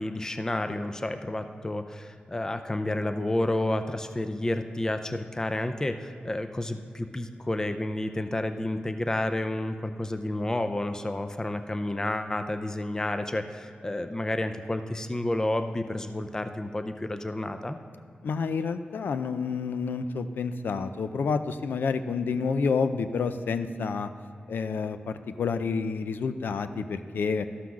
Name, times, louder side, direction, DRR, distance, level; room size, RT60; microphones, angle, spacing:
voice 1, 0.0-17.8, left 1 dB, 20° left, 9 dB, 0.5 m, -30 dB
voice 2, 18.2-24.1 24.5-27.5, left 5 dB, 90° left, 10 dB, 0.5 m, -29 dB
13.0 x 5.8 x 6.2 m, 2.5 s
wide cardioid pair, 85°, 3 cm